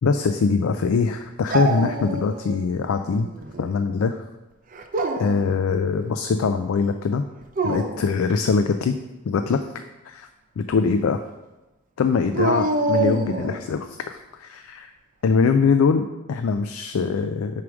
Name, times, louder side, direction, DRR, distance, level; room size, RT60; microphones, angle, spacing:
voice 1, 0.0-3.3 3.6-4.2 5.2-7.3 7.6-9.0 9.2-9.6 10.1-10.3 10.6-11.2 12.0-14.9 15.2-17.6, left 5 dB, 65° left, 7 dB, 0.3 m, -22 dB
Dog, 1.5-2.6 3.0-3.7 4.7-5.5 7.4-8.1 12.3-13.7, right 2 dB, 35° right, 0.5 m, -26 dB
4.8 x 4.8 x 6.0 m, 1.1 s
head